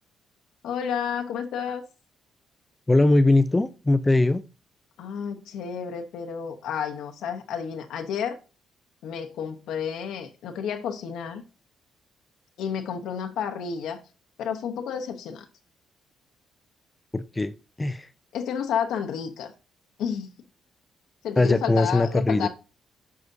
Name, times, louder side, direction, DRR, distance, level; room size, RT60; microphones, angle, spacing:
voice 1, 0.6-1.8 5.0-8.4 9.0-11.4 12.6-14.0 14.4-15.5 18.3-19.5 20.0-20.3 21.2-22.5, left 7 dB, 80° left, 0.8 m, -31 dB
voice 2, 2.9-4.4 17.1-17.5 17.8-18.1 21.4-22.5, left 2 dB, 15° left, 0.5 m, -21 dB
9.2 x 4.9 x 2.6 m
cardioid pair, 90°, 0 cm